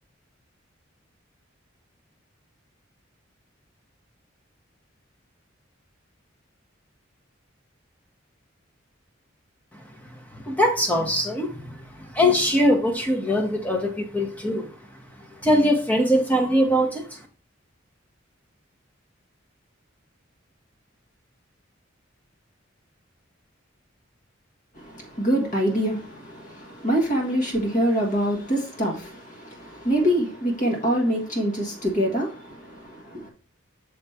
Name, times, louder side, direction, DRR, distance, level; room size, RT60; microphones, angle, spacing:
voice 1, 10.3-14.7 15.4-17.2, equal, 10° left, 1.0 m, -22 dB
voice 2, 24.7-33.3, equal, 40° left, 1.6 m, -25 dB
6.5 x 3.5 x 4.2 m
head